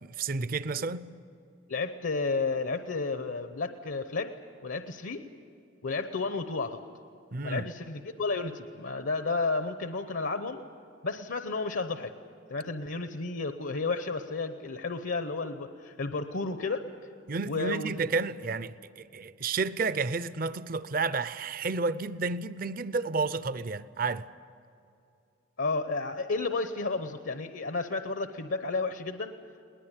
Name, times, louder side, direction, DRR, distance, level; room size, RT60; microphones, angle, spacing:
voice 1, 0.0-1.1 7.3-7.7 17.3-24.3, right 4 dB, 45° right, 0.5 m, -31 dB
voice 2, 1.7-4.3 4.6-5.2 5.8-6.8 7.4-10.6 11.0-12.1 12.5-16.9 17.5-18.0 25.6-29.3, left 3 dB, 75° left, 0.8 m, -32 dB
20.5 x 19.5 x 8.9 m
head